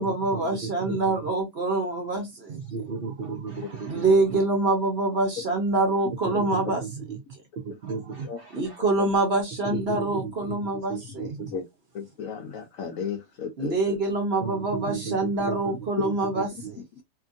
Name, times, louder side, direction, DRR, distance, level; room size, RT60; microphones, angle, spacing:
voice 1, 0.0-2.6 3.8-6.9 8.5-11.6 13.6-16.8, right 2 dB, 50° right, 0.8 m, -25 dB
voice 2, 2.5-4.0 6.5-6.9 7.8-8.7 9.7-10.2 10.9-11.5 14.4-15.1 15.4-15.6 16.0-16.4, right 5 dB, 70° right, 0.5 m, -34 dB
voice 3, 11.9-14.0, left 6 dB, 65° left, 0.8 m, -34 dB
2.9 x 2.6 x 2.4 m
omnidirectional pair, 1.8 m